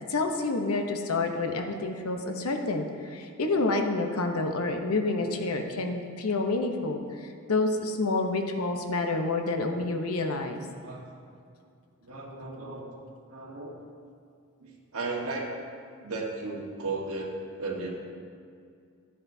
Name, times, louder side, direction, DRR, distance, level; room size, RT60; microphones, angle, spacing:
voice 1, 0.1-7.0 7.5-10.6, left 3 dB, 90° left, 4 dB, 0.9 m, -28 dB
voice 2, 12.0-12.9 13.3-13.7 14.6-15.5 16.0-18.0, right 3 dB, 85° right, -2 dB, 1.5 m, -35 dB
11.0 x 10.0 x 2.7 m, 2.3 s
head